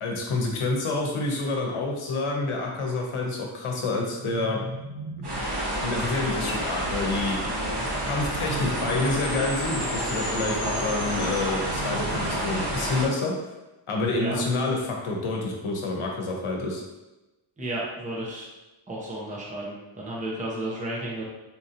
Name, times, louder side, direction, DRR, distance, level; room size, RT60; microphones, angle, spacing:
voice 1, 0.0-4.6 5.8-7.4 8.1-13.3 13.9-16.8, left 3 dB, 75° left, 0 dB, 0.9 m, -28 dB
sound 1, 3.8-5.8 7.4-9.3 11.1-13.1, right 2 dB, 90° right, 1.0 m, -39 dB
sound 2, 5.2-13.1, right 1 dB, 50° right, 1.2 m, -29 dB
sound 3, 7.6-12.2, left 2 dB, 45° left, 0.9 m, -39 dB
voice 2, 17.6-18.4 18.9-21.2, right 1 dB, 15° right, -4 dB, 0.7 m, -33 dB
4.2 x 2.8 x 2.5 m, 1.0 s
wide cardioid pair, 145°, 50 cm